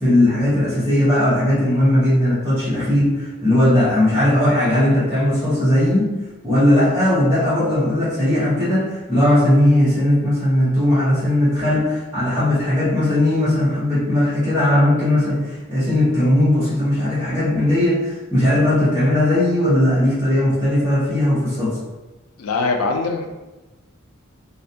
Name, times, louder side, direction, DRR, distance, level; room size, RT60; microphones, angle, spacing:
voice 1, 0.0-6.1 6.4-21.8, left 1 dB, 10° right, -14 dB, 0.8 m, -18 dB
voice 2, 22.4-23.3, left 3 dB, 85° left, 4 dB, 0.4 m, -22 dB
2.4 x 2.2 x 2.6 m, 1.1 s
head